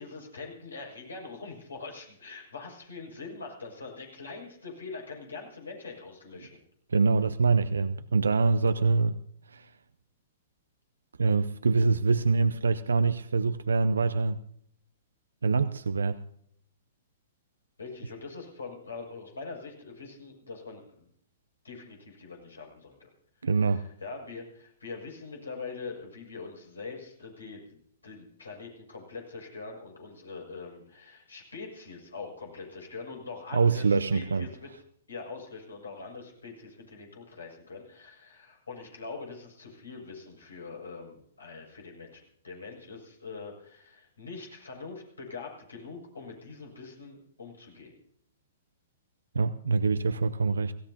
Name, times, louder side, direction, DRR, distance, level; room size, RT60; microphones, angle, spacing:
voice 1, 0.0-6.6 17.8-21.0 21.6-23.1 23.5-34.7 35.1-47.9, left 4 dB, 90° left, 0 dB, 6.5 m, -43 dB
voice 2, 6.9-9.2 9.5-9.7 11.2-14.4 15.4-16.2 23.4-23.8 33.5-34.5 49.3-50.7, right 4 dB, 85° right, 12 dB, 0.6 m, -25 dB
30.0 x 16.0 x 2.8 m, 0.67 s
hypercardioid pair, 120°, 0 cm